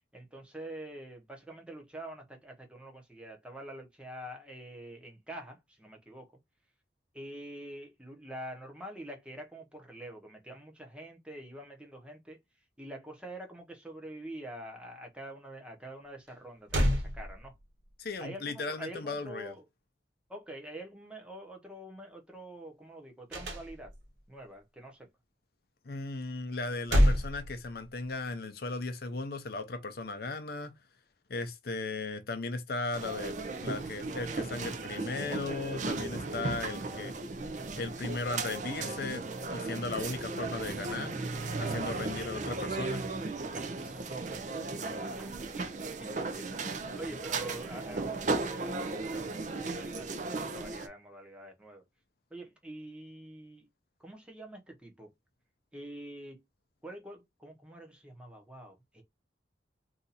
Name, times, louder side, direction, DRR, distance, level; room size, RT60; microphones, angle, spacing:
voice 1, 0.0-6.3 7.1-12.4 12.8-17.5 18.2-19.6 20.3-23.9 24.3-25.1 43.5-45.7 46.0-51.8 52.3-53.7 54.0-55.1 55.7-56.4 56.8-59.0, right 1 dB, 5° right, 0.8 m, -46 dB
sound 1, 16.3-16.4 16.7-17.8 23.3-24.2 26.5-28.1, equal, 85° right, 1.4 m, -28 dB
voice 2, 18.0-19.5 25.9-30.7 31.3-33.4 33.6-37.1 37.8-39.2 39.5-41.1 41.6-43.0, left 3 dB, 55° left, 0.5 m, -36 dB
sound 2, 32.9-50.9, right 3 dB, 40° right, 0.5 m, -36 dB
2.8 x 2.4 x 4.0 m
head